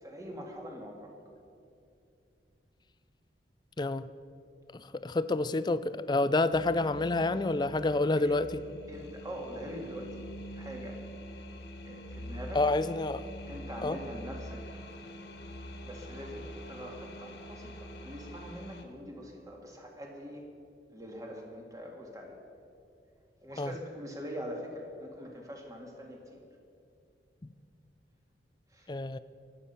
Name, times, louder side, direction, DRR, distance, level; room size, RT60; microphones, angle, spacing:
voice 1, 0.0-1.1 8.2-8.4 8.9-10.2 10.5-11.0 11.8-12.6 13.5-14.6 15.8-20.5 20.9-22.4 23.4-26.4 28.7-28.9, equal, 20° right, 0 dB, 2.1 m, -43 dB
voice 2, 3.8-4.1 4.7-8.5 12.5-13.2 13.8-14.0 23.6-23.7 28.9-29.2, left 2 dB, 25° left, 14 dB, 0.4 m, -28 dB
sound 1, 6.5-18.8, equal, 65° left, 1.6 m, -45 dB
24.0 x 8.4 x 5.6 m, 2.5 s
head